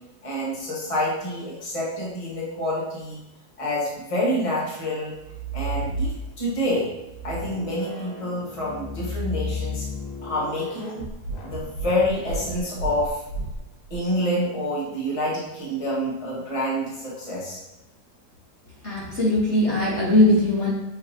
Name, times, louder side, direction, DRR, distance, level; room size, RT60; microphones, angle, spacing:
voice 1, 0.2-3.2 3.6-5.1 5.5-6.9 7.2-9.9 10.2-11.1 11.4-13.2 13.9-17.6, left 1 dB, 20° left, -5 dB, 1.6 m, -27 dB
sound 1, 5.1-6.5 7.0-14.0, equal, 85° left, 2.0 m, -32 dB
voice 2, 18.8-20.7, left 1 dB, 45° left, -6 dB, 1.6 m, -20 dB
7.0 x 4.9 x 2.9 m, 0.96 s
omnidirectional pair, 1.7 m